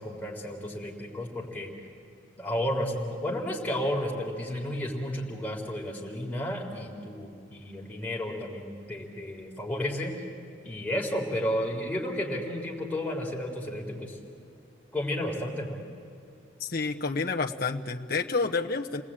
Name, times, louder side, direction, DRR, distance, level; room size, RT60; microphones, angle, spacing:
voice 1, 0.0-1.7 2.4-10.2 10.6-14.2 14.9-15.8, left 1 dB, 10° left, -3 dB, 3.6 m, -32 dB
voice 2, 16.6-19.0, left 4 dB, 50° left, 2 dB, 1.0 m, -29 dB
29.5 x 19.5 x 8.8 m, 2.6 s
head